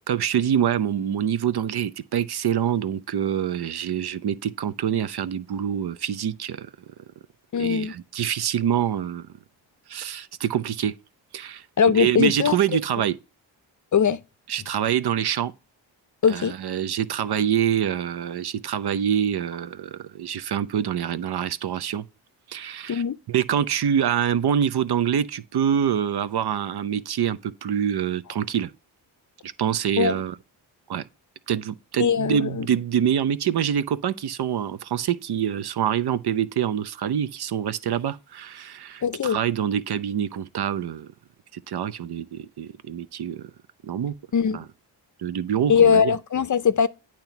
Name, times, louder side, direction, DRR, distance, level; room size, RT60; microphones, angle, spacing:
voice 1, 0.1-6.7 7.6-9.3 9.9-10.9 11.3-13.1 14.5-15.5 16.3-22.0 22.5-28.7 29.4-30.3 30.9-31.0 31.5-41.1 41.5-43.5 43.8-44.1 44.5-44.6 45.2-46.1, right 9 dB, 55° right, 0.6 m, -25 dB
voice 2, 7.5-7.9 11.8-12.6 13.9-14.2 16.2-16.5 22.9-23.2 30.0-30.2 32.0-32.7 39.0-39.4 44.3-44.6 45.7-46.9, left 7 dB, 40° left, 0.6 m, -20 dB
8.8 x 3.0 x 5.7 m
supercardioid pair, 40°, 48 cm